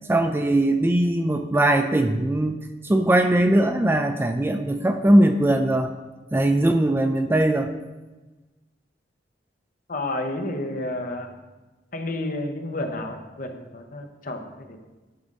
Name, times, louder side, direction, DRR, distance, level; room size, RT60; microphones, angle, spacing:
voice 1, 0.1-5.9 6.3-7.7, right 1 dB, 10° right, 7 dB, 0.3 m, -20 dB
voice 2, 9.9-11.4 11.9-14.8, left 1 dB, 45° left, 4 dB, 0.9 m, -31 dB
10.5 x 4.0 x 5.2 m, 1.2 s
head